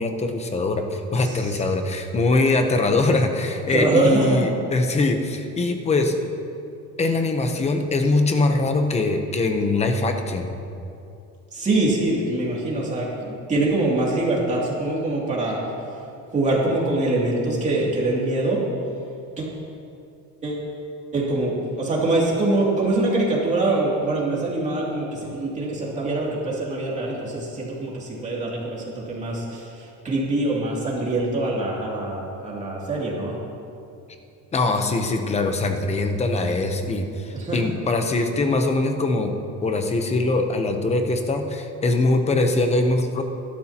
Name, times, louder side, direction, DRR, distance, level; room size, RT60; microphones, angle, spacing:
voice 1, 0.0-6.2 7.0-10.5 34.5-39.3 39.6-43.2, left 2 dB, 20° left, 5 dB, 0.8 m, -22 dB
voice 2, 1.2-1.6 3.7-4.4 11.5-15.6 16.3-18.6 19.4-19.5 20.4-20.7 21.1-33.4 37.3-37.6, right 2 dB, 20° right, -4 dB, 2.7 m, -24 dB
21.5 x 12.0 x 2.9 m, 2.6 s
cardioid pair, 165°, 34 cm